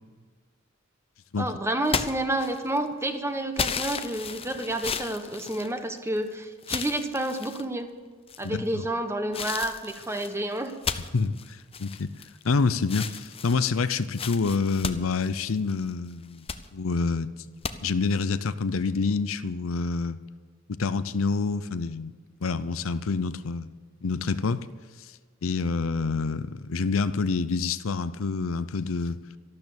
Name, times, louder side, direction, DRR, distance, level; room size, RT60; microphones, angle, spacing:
voice 1, 1.4-7.9 8.4-10.7, right 1 dB, 15° right, 7 dB, 1.2 m, -29 dB
sound 1, 1.8-2.9 3.6-6.2 6.6-7.6 8.3-8.7 9.3-12.5 12.8-15.8 16.2-16.6 17.6-17.7, left 6 dB, 30° left, 0.7 m, -34 dB
voice 2, 11.1-12.1 12.4-16.5 16.7-17.3 17.8-20.2 20.7-22.1 22.4-23.7 24.0-24.7 25.0-25.1 25.4-29.2, left 4 dB, 80° left, 14 dB, 0.6 m, -27 dB
13.0 x 12.0 x 7.1 m, 1.5 s
head